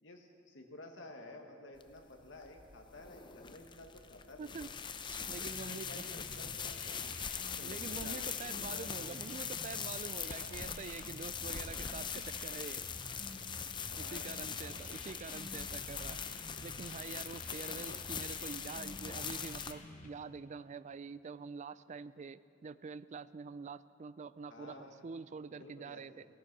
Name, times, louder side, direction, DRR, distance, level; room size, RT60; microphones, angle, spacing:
voice 1, 0.0-4.8 5.4-7.1 7.3-9.2 10.2-10.8 13.9-15.0 17.7-18.0 24.5-25.0 25.5-26.2, left 2 dB, 65° left, 2 dB, 1.5 m, -53 dB
sound 1, 1.8-19.7, left 7 dB, 25° left, 0.5 m, -42 dB
voice 2, 4.4-4.7 5.0-6.0 7.6-12.8 14.0-16.2 16.6-26.3, right 5 dB, 40° right, 16 dB, 0.3 m, -46 dB
sound 2, 5.5-20.1, left 1 dB, 40° left, 1.1 m, -51 dB
15.5 x 14.0 x 6.1 m, 2.4 s
head